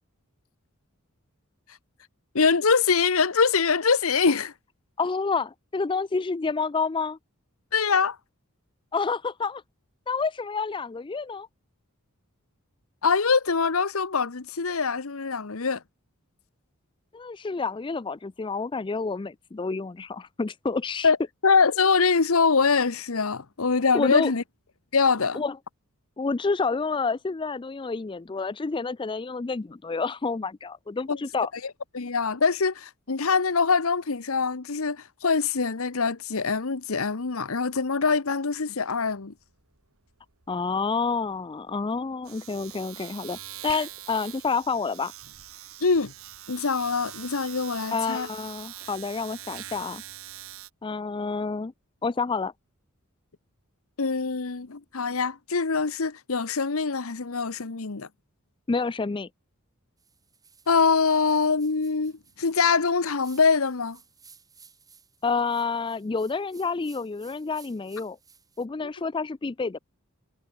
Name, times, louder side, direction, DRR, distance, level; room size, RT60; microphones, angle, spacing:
voice 1, 2.3-4.5 7.7-8.2 13.0-15.8 21.0-21.2 21.4-24.4 24.9-25.4 31.1-31.2 31.9-39.3 45.8-46.1 46.5-48.3 54.0-58.1 60.7-62.1 62.4-64.0, left 5 dB, 70° left, 1.0 m, -24 dB
voice 2, 5.0-7.2 8.9-9.6 10.1-11.5 17.1-21.1 23.9-24.3 25.3-25.6 26.2-31.5 40.5-43.4 43.6-45.1 47.9-50.0 50.8-51.7 52.0-52.5 58.7-59.3 65.2-68.2 68.6-69.8, left 4 dB, 20° left, 0.4 m, -29 dB
Domestic sounds home sounds, 38.9-39.1 39.4-50.7, right 12 dB, 70° right, 2.5 m, -43 dB
sound 1, 60.0-68.7, right 6 dB, 15° right, 7.3 m, -57 dB
head